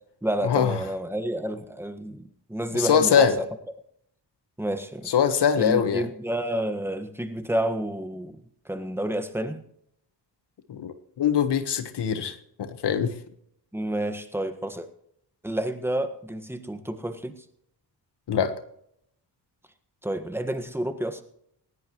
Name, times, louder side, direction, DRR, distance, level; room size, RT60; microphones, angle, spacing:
voice 1, 0.2-3.5 4.6-5.1 5.6-9.6 13.7-14.9 15.4-17.4 20.0-21.2, right 1 dB, 5° right, 8 dB, 1.5 m, -30 dB
voice 2, 2.8-3.3 5.1-6.0 10.7-13.1 18.3-18.5, left 8 dB, 80° left, 9 dB, 1.3 m, -22 dB
19.5 x 16.5 x 3.1 m, 0.71 s
wide cardioid pair, 100°, 40 cm